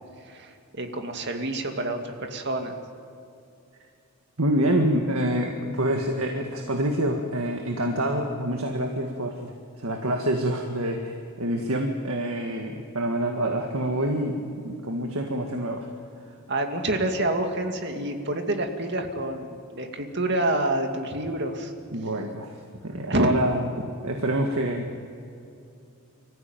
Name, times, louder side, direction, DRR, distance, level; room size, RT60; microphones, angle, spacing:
voice 1, 0.3-2.8 16.5-21.7 23.1-23.4, right 1 dB, 50° right, 4 dB, 2.3 m, -27 dB
voice 2, 4.4-15.9 21.9-22.6 22.8-23.7 24.0-25.0, right 1 dB, 75° right, 3 dB, 1.9 m, -27 dB
25.0 x 15.0 x 9.3 m, 2.6 s
head